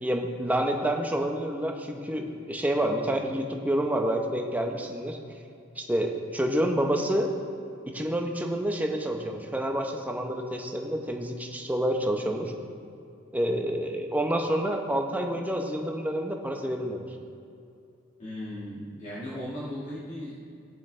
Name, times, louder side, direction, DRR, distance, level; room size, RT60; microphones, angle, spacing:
voice 1, 0.0-5.2 5.8-7.3 7.9-12.5 13.3-17.0, right 1 dB, 10° right, 2 dB, 0.8 m, -28 dB
voice 2, 18.2-20.3, left 1 dB, 40° left, -9 dB, 1.9 m, -37 dB
17.5 x 7.2 x 3.3 m, 2.6 s
head